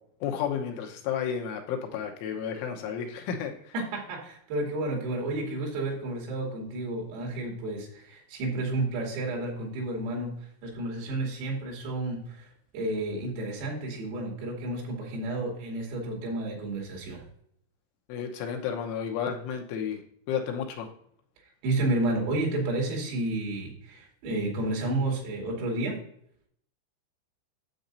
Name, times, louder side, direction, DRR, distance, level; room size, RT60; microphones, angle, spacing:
voice 1, 0.2-3.7 18.1-20.0 20.3-20.9, left 7 dB, 80° left, 3 dB, 3.2 m, -32 dB
voice 2, 3.7-10.3 10.6-17.2 21.6-26.0, right 2 dB, 85° right, -1 dB, 5.2 m, -31 dB
10.0 x 7.7 x 2.6 m, 0.66 s
omnidirectional pair, 5.9 m